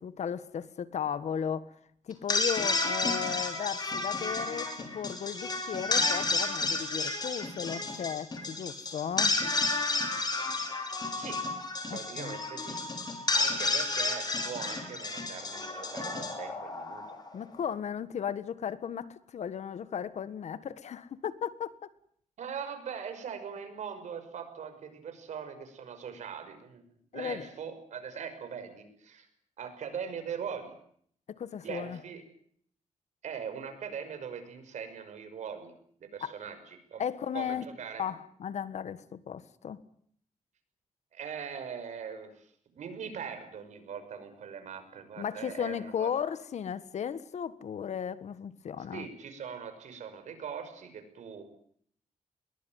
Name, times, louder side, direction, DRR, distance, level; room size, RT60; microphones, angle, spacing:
voice 1, 0.0-1.7 2.1-9.4 11.9-12.4 17.3-21.7 27.1-27.5 31.3-32.0 36.2-36.3 37.0-37.6 38.0-39.8 45.2-49.1, left 8 dB, 75° left, 15 dB, 1.6 m, -35 dB
sound 1, 2.1-17.4, left 3 dB, 35° left, 5.9 m, -31 dB
voice 2, 11.9-12.8 13.3-17.0 22.4-26.8 27.1-29.3 29.6-30.7 31.6-32.2 33.2-35.7 36.0-37.0 37.3-38.1 41.1-46.1 48.9-51.4, right 7 dB, 80° right, 8 dB, 5.8 m, -41 dB
21.5 x 21.0 x 9.4 m, 0.65 s
cardioid pair, 90°, 12 cm